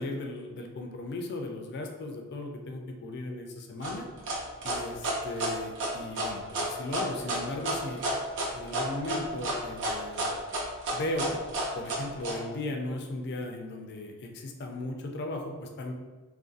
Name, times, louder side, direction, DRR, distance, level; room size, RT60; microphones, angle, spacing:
voice 1, 0.0-4.1 4.6-8.0 8.5-10.3 10.9-11.4 11.7-15.9, left 2 dB, 50° left, 3 dB, 0.3 m, -36 dB
sound 1, 3.8-12.4, right 1 dB, 55° right, 0.6 m, -31 dB
2.6 x 2.2 x 2.4 m, 1.2 s
head